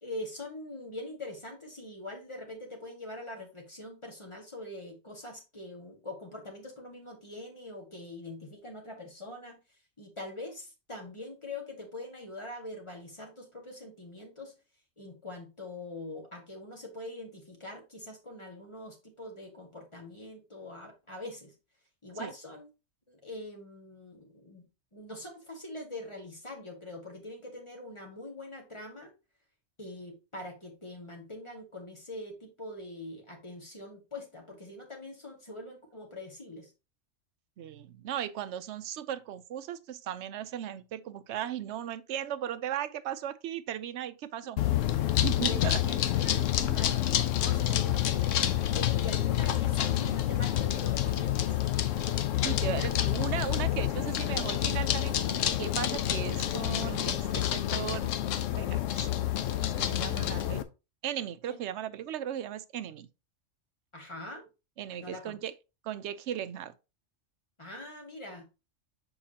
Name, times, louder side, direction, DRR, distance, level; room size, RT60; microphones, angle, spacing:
voice 1, 0.0-9.6 10.0-14.5 15.0-21.5 22.0-22.7 23.1-24.6 24.9-29.1 29.8-36.7 45.5-46.0 46.2-47.0 47.3-51.6 61.5-61.6 63.9-64.5 65.0-65.4 67.6-68.5, left 1 dB, 25° left, 1.6 m, -43 dB
voice 2, 37.6-44.6 45.2-45.8 52.4-58.1 58.5-59.1 59.6-60.6 61.0-63.1 64.8-65.5 65.8-66.7, right 10 dB, 70° right, 0.8 m, -37 dB
sound 1, 44.6-60.6, left 12 dB, 80° left, 1.0 m, -28 dB
sound 2, 50.1-56.4 57.1-57.4, left 8 dB, 65° left, 1.2 m, -47 dB
7.0 x 4.8 x 2.8 m
omnidirectional pair, 1.3 m